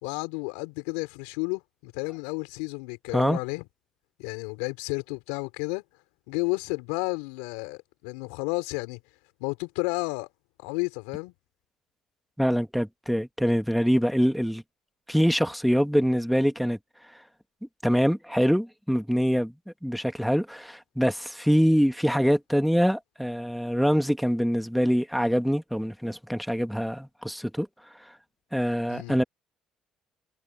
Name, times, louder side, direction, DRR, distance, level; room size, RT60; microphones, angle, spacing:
voice 1, 0.0-3.7 4.2-5.8 6.3-9.0 9.4-10.3 10.6-11.3 28.9-29.2, left 29 dB, 80° left, 4.3 m, -32 dB
voice 2, 12.4-14.6 15.1-16.8 17.8-19.5 19.8-27.7 28.5-29.2, equal, ahead, 2.1 m, -24 dB
hypercardioid pair, 55°, 0 cm